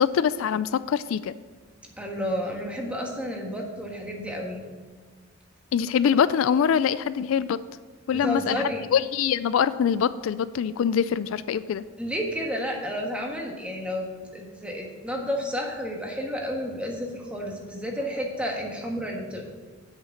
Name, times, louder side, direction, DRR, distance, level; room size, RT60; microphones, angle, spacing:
voice 1, 0.0-1.3 5.7-7.6 8.1-8.6 8.9-11.8, left 7 dB, 75° left, 16 dB, 0.3 m, -24 dB
voice 2, 2.0-4.6 8.1-8.8 12.0-14.1 14.3-19.4, equal, 5° right, 0 dB, 1.5 m, -31 dB
8.0 x 6.6 x 7.2 m, 1.4 s
head